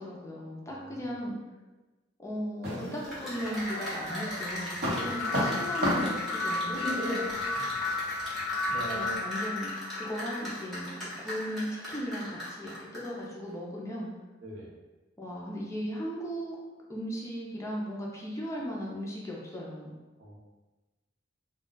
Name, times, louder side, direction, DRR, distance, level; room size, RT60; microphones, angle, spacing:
voice 1, 0.0-1.3 2.2-4.7 5.0-6.8 8.9-14.1 15.2-16.6 16.9-19.9, equal, 15° left, -4 dB, 0.5 m, -37 dB
voice 2, 0.6-1.2 4.9-5.2 7.2-7.9 14.4-14.7 20.2-20.4, equal, 85° right, -4 dB, 0.8 m, -48 dB
sound 1, 2.6-3.6 4.0-9.2, equal, 55° right, 1.0 m, -33 dB
Cheering / Applause, 2.8-13.2, equal, ahead, 0.9 m, -38 dB
sound 2, 4.9-11.0, left 3 dB, 85° left, 0.4 m, -34 dB
2.3 x 2.2 x 3.8 m, 1.2 s
head